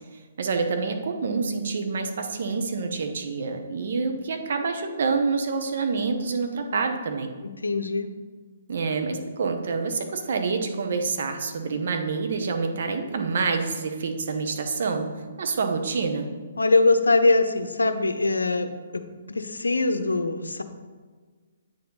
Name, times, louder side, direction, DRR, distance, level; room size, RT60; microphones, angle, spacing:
voice 1, 0.1-7.3 8.7-15.1 15.4-16.3, right 4 dB, 60° right, 5 dB, 1.0 m, -27 dB
voice 2, 7.4-8.1 16.6-20.6, left 3 dB, 85° left, 9 dB, 0.6 m, -23 dB
8.8 x 4.8 x 3.9 m, 1.5 s
figure-of-eight pair, 135°, 0 cm